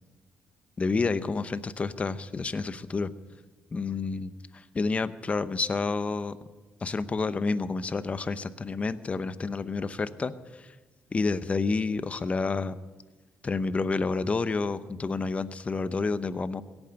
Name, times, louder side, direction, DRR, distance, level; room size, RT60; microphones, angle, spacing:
voice 1, 0.8-3.1 3.7-6.4 6.8-10.7 11.1-12.8 13.4-16.6, left 4 dB, 30° left, 13 dB, 0.8 m, -29 dB
17.0 x 8.9 x 8.9 m, 1.2 s
cardioid pair, 110°, 5 cm